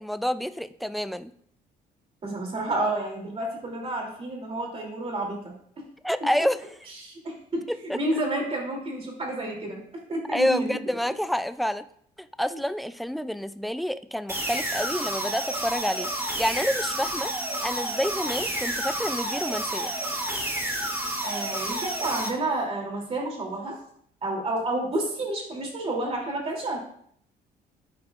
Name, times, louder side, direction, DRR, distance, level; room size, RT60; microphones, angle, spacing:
voice 1, 0.0-1.3 6.0-6.6 7.7-8.0 10.3-11.8 12.2-17.3 17.6-19.9, equal, ahead, 12 dB, 0.3 m, -28 dB
voice 2, 2.2-5.5 7.0-9.8 10.1-10.8 12.5-12.6 21.2-23.8 24.2-26.8, right 2 dB, 35° right, 0 dB, 2.8 m, -30 dB
sound 1, 14.3-22.3, right 1 dB, 15° right, 2.7 m, -30 dB
12.0 x 4.8 x 2.4 m, 0.66 s
cardioid pair, 110°, 17 cm